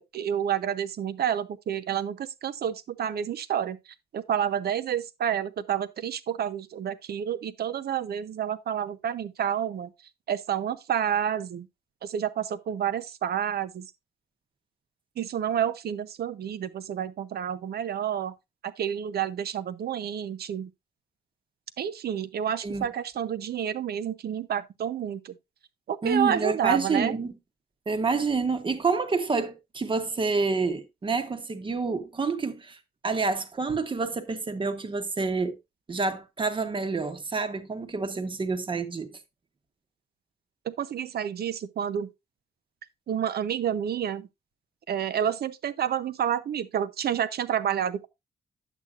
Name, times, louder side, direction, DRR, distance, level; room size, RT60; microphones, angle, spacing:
voice 1, 0.0-9.9 10.3-11.7 12.0-13.9 15.2-18.3 18.6-20.7 21.8-25.3 25.9-27.2 40.6-42.1 43.1-44.3 44.9-48.1, right 9 dB, 65° right, 0.7 m, -29 dB
voice 2, 26.0-27.3 27.9-32.8 33.0-35.6 35.9-39.1, right 4 dB, 30° right, 1.1 m, -28 dB
10.0 x 7.9 x 2.5 m
wide cardioid pair, 145°, 17 cm